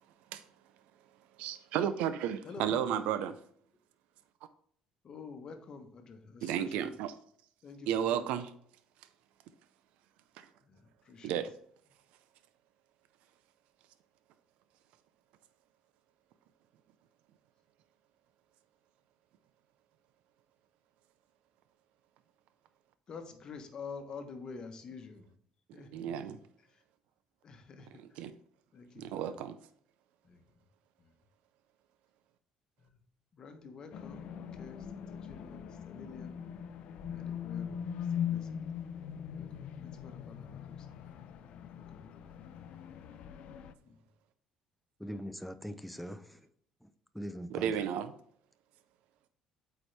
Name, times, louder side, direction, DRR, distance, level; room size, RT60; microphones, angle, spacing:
voice 1, 1.4-3.3 6.4-7.1 7.9-8.5 11.2-11.5 25.9-26.4 28.2-28.3 29.0-29.5 47.5-48.1, right 9 dB, 85° right, 0.5 m, -32 dB
voice 2, 2.4-3.1 5.0-6.9 7.6-8.4 10.6-11.3 23.1-25.3 25.7-26.8 27.4-28.3 28.7-29.3 30.2-30.4 31.0-31.1 32.8-33.0 33.3-36.4 37.1-38.6 39.3-40.9 41.8-42.4 43.8-44.0, left 4 dB, 40° left, 1.1 m, -49 dB
sound 1, 33.9-43.7, left 8 dB, 65° left, 0.5 m, -41 dB
voice 3, 45.0-46.5 46.8-46.9 47.1-47.9, equal, ahead, 0.5 m, -42 dB
8.4 x 4.6 x 3.3 m
cardioid pair, 135°, 2 cm